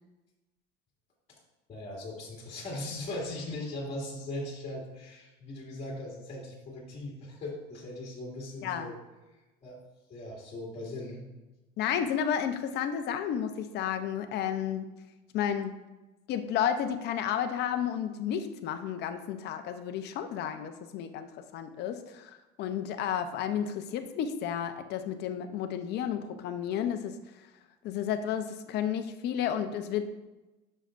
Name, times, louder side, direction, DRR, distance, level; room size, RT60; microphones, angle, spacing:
voice 1, 1.7-9.0 9.6-9.8 10.1-11.2, left 1 dB, 30° left, -4 dB, 2.4 m, -39 dB
voice 2, 11.8-14.8 15.3-15.7 16.3-27.1 27.8-30.0, left 9 dB, 55° left, 7 dB, 0.8 m, -32 dB
9.9 x 6.5 x 2.6 m, 1.1 s
supercardioid pair, 115°, 21 cm